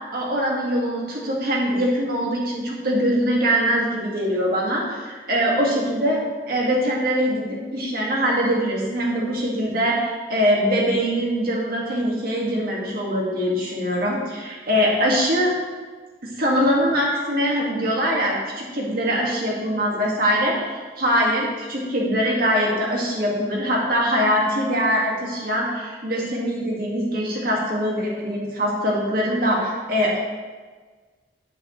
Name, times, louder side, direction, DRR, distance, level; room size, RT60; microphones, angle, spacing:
voice 1, 0.1-6.2 6.5-15.5 16.2-20.6 21.0-30.2, equal, 55° right, -3 dB, 1.8 m, -22 dB
9.0 x 7.7 x 3.1 m, 1.4 s
head